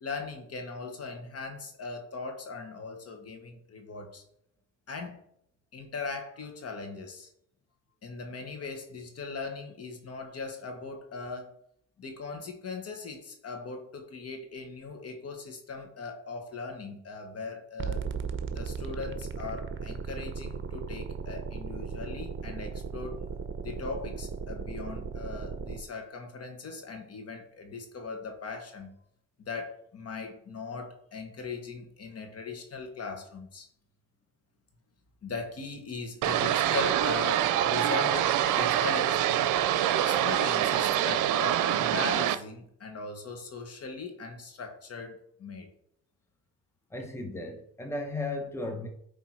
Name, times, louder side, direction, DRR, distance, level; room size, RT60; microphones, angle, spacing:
voice 1, 0.0-4.2 4.9-5.2 5.7-7.3 8.0-11.6 12.0-18.1 18.5-23.2 23.6-28.9 29.4-33.7 35.2-39.5 39.9-45.7, left 4 dB, 55° left, 4 dB, 1.7 m, -39 dB
sound 1, 17.8-25.8, right 5 dB, 40° right, 0.8 m, -36 dB
sound 2, 36.2-42.4, right 11 dB, 85° right, 0.6 m, -25 dB
voice 2, 46.9-48.9, left 2 dB, 10° left, 3 dB, 1.0 m, -35 dB
9.7 x 3.4 x 4.6 m, 0.70 s
cardioid pair, 90°, 30 cm